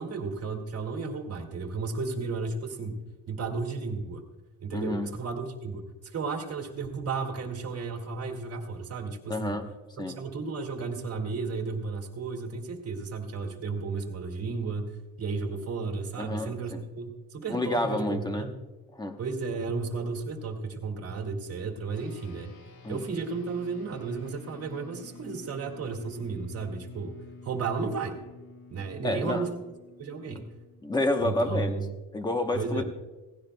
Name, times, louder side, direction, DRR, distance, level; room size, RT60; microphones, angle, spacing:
voice 1, 0.0-3.0 3.3-4.2 4.6-5.9 6.1-9.6 10.0-18.5 19.2-22.5 22.9-27.1 27.4-28.2 28.7-29.6 30.0-30.5 31.2-31.9 32.5-32.8, right 4 dB, 35° right, 2 dB, 2.1 m, -33 dB
voice 2, 4.7-5.1 9.3-9.7 10.0-10.2 16.2-16.8 17.5-18.5 18.9-19.2 22.8-23.0 29.0-29.5 30.3-30.4 30.8-31.8 32.1-32.8, left 2 dB, 10° left, 5 dB, 0.9 m, -29 dB
sound 1, 21.9-31.6, left 3 dB, 60° left, 2.8 m, -49 dB
17.5 x 16.0 x 2.2 m, 1.2 s
cardioid pair, 155°, 40 cm